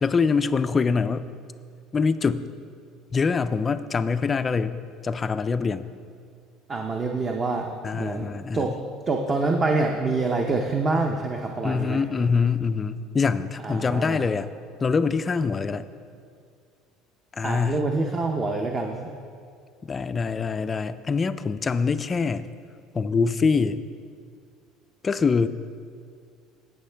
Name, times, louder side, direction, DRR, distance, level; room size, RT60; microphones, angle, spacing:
voice 1, 0.0-1.3 1.9-2.5 3.1-4.8 5.0-5.9 7.8-8.8 11.6-14.5 14.8-15.9 17.3-17.8 19.8-22.5 22.9-23.8 25.0-25.5, left 5 dB, 20° left, 12 dB, 0.3 m, -24 dB
voice 2, 6.7-8.3 8.5-8.7 9.1-12.0 13.6-14.3 17.4-19.1, right 3 dB, 25° right, 2 dB, 0.6 m, -26 dB
17.0 x 6.3 x 3.3 m, 2.3 s
cardioid pair, 145°, 0 cm